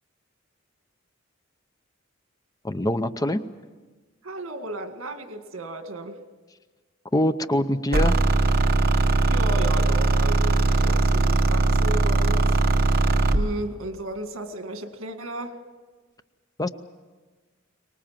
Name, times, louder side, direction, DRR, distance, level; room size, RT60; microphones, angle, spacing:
voice 1, 2.6-3.4 7.1-8.2 16.6-16.7, left 1 dB, 20° left, 10 dB, 0.6 m, -24 dB
voice 2, 4.2-6.2 9.3-12.6 13.3-15.6, right 1 dB, 85° right, 6 dB, 1.9 m, -34 dB
sound 1, 7.9-13.5, right 2 dB, 50° right, 1.3 m, -20 dB
24.0 x 19.5 x 7.5 m, 1.4 s
head